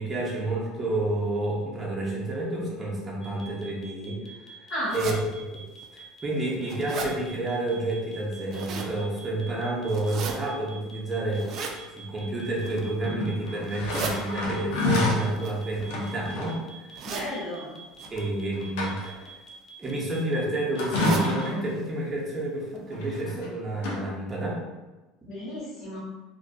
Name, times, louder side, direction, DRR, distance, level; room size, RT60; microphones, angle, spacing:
voice 1, 0.0-5.2 5.5-5.6 5.9-17.1 18.1-19.2 19.8-24.6, right 2 dB, 20° right, -4 dB, 0.7 m, -30 dB
sound 1, 3.2-21.5, right 5 dB, 30° left, 0.4 m, -46 dB
voice 2, 4.7-5.1 17.0-17.7 25.3-26.0, equal, 50° left, -8 dB, 1.2 m, -33 dB
sound 2, 4.9-5.2 5.8-5.9 6.3-7.1 8.2-8.9 9.9-10.3 11.3-11.8 12.5-12.9 13.6-14.1 15.3-16.3 16.9-17.3 18.0-18.2 19.2-19.5 19.8-19.9 20.2-20.3 20.8-21.3 21.7-21.8 22.1-22.2 22.8-22.9 23.2-23.3, right 5 dB, 50° right, 0.3 m, -36 dB
sound 3, 13.0-15.3 15.8-16.6 18.0-18.2 18.5-19.3 20.7-21.7 22.9-23.5 23.8-24.0, left 2 dB, 85° left, 0.6 m, -28 dB
2.5 x 2.4 x 2.2 m, 1.1 s
supercardioid pair, 125°, 0 cm